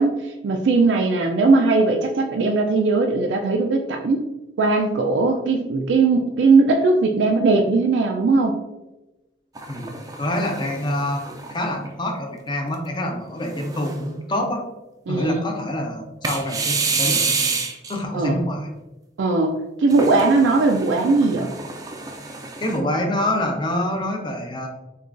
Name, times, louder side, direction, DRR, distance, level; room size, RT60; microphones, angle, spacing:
voice 1, 0.0-4.3 4.6-8.6 15.1-15.5 18.1-18.4 19.2-21.5, right 3 dB, 90° right, 3 dB, 0.4 m, -19 dB
sound 1, 9.6-12.1 12.7-12.8 13.5-14.1 16.2-18.0 19.9-22.8, right 4 dB, 20° right, 0.4 m, -28 dB
voice 2, 10.2-14.6 15.1-17.5 17.9-18.7 22.6-24.7, left 1 dB, 25° left, 2 dB, 0.6 m, -26 dB
6.5 x 2.3 x 2.5 m, 1.0 s
head